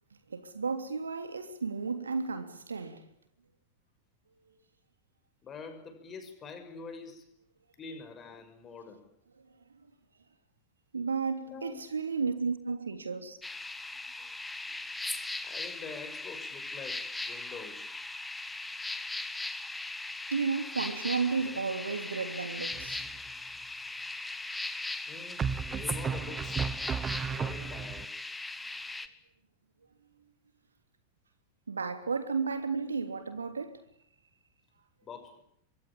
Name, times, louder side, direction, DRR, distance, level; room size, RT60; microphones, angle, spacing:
voice 1, 0.3-3.1 10.9-13.4 20.3-23.1 31.7-33.8, right 5 dB, 75° right, 3.1 m, -33 dB
voice 2, 5.4-7.3 7.8-9.0 11.5-11.8 15.4-17.9 25.1-26.7 27.2-28.2 32.8-32.9 35.0-35.4, left 5 dB, 25° left, 6.7 m, -46 dB
sound 1, 13.4-29.1, left 2 dB, 5° left, 1.8 m, -39 dB
sound 2, 22.7-23.3 25.4-28.1, right 6 dB, 20° right, 1.1 m, -34 dB
26.0 x 23.0 x 8.7 m
figure-of-eight pair, 90°, 0 cm